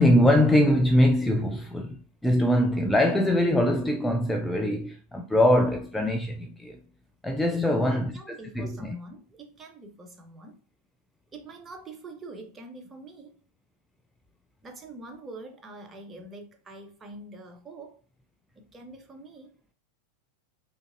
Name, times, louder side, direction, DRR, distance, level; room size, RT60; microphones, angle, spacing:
voice 1, 0.0-6.8 7.2-9.0, left 1 dB, 5° left, 0.3 m, -23 dB
voice 2, 7.5-10.6 11.3-13.4 14.6-18.0 18.5-19.6, right 2 dB, 20° right, 0.8 m, -44 dB
5.0 x 2.9 x 2.4 m
figure-of-eight pair, 90°, 0 cm